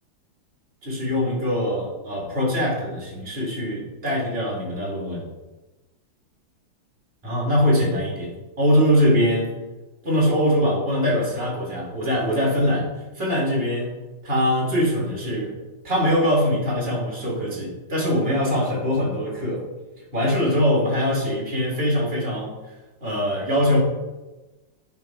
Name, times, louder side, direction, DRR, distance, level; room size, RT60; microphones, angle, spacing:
voice 1, 0.8-5.3 7.2-9.6 10.0-12.9 13.1-15.6 15.8-19.7 20.1-22.6 23.0-23.8, equal, 30° right, -3 dB, 2.3 m, -22 dB
9.4 x 4.2 x 4.5 m, 1.1 s
omnidirectional pair, 2.3 m